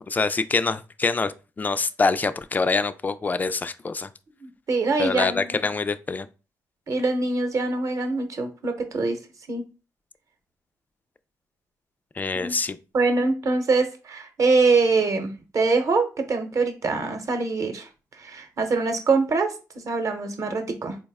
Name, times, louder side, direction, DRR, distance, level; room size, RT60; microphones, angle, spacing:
voice 1, 0.1-4.1 5.0-6.3 12.2-12.8, left 4 dB, 25° left, 0.3 m, -25 dB
voice 2, 4.4-5.6 6.9-9.2 9.5-9.6 12.3-12.5 12.9-17.9 18.2-21.0, right 3 dB, 50° right, 0.8 m, -24 dB
4.0 x 2.1 x 3.4 m
cardioid pair, 80°, 7 cm